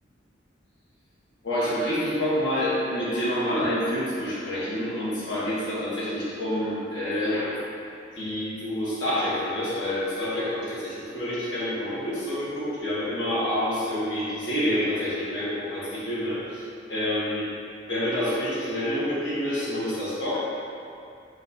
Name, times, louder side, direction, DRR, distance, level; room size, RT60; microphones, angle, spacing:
voice 1, 1.4-7.6 8.1-16.6 16.9-17.5 17.9-20.5, left 1 dB, 75° left, -10 dB, 1.4 m, -28 dB
4.1 x 3.8 x 2.7 m, 2.6 s
head